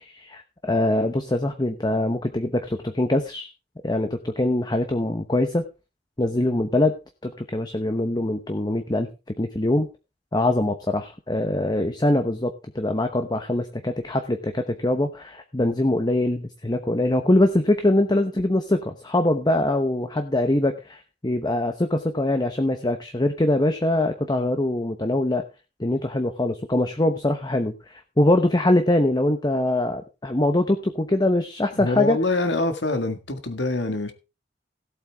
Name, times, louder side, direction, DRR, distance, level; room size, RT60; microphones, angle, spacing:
voice 1, 0.0-3.5 3.8-5.6 6.2-6.9 7.2-9.1 9.4-9.9 10.3-25.4 25.8-32.2, left 1 dB, 25° left, 1.0 m, -23 dB
voice 2, 31.7-34.1, left 2 dB, 70° left, 1.9 m, -25 dB
17.0 x 8.1 x 3.5 m
head